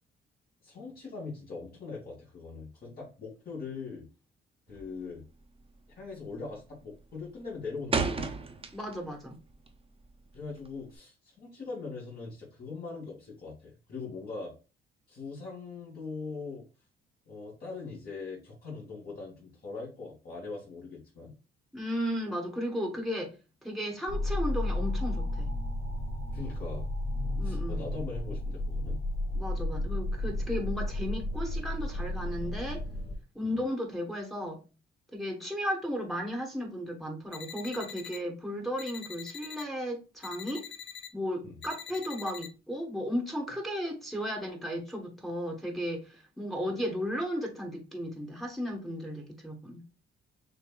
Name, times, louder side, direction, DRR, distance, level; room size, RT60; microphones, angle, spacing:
voice 1, 0.6-4.0 4.7-5.2 6.0-8.4 10.3-14.5 15.1-16.6 17.3-21.3 26.3-26.8 27.4-29.0 33.4-33.6 41.4-41.6, left 4 dB, 50° left, 2.1 m, -41 dB
sound 1, 4.7-5.1 5.4-5.7 6.1-6.5 6.8-9.2 9.5-11.0, right 4 dB, 30° right, 0.9 m, -33 dB
voice 2, 8.7-9.4 21.7-23.4 23.6-25.5 27.4-27.9 29.3-32.9 33.3-34.6 35.1-40.6 41.1-49.8, equal, ahead, 1.2 m, -35 dB
sound 2, 24.1-33.2, left 1 dB, 30° left, 1.3 m, -32 dB
sound 3, 37.3-38.2 38.8-39.6 40.2-41.1 41.6-42.5, left 8 dB, 65° left, 0.7 m, -44 dB
6.2 x 2.9 x 2.4 m
cardioid pair, 90°, 20 cm